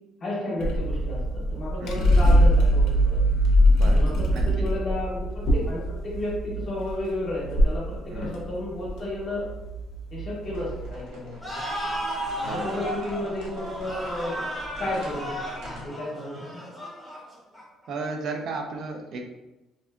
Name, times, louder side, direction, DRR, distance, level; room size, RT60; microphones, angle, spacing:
voice 1, 0.2-3.2 3.8-9.5 10.1-11.6 12.3-14.4 14.8-16.6, left 1 dB, 35° left, -5 dB, 0.7 m, -32 dB
sound 1, 0.6-10.9, equal, 70° left, 0.5 m, -22 dB
voice 2, 1.8-2.1 3.7-4.7 8.1-8.5 12.4-12.8 17.9-19.2, right 3 dB, 50° right, 3 dB, 0.4 m, -34 dB
sound 2, 10.4-15.9, equal, 80° right, 0.7 m, -44 dB
sound 3, 11.4-17.9, equal, ahead, 0.7 m, -34 dB
2.6 x 2.5 x 2.2 m, 1.0 s
cardioid pair, 160°, 0 cm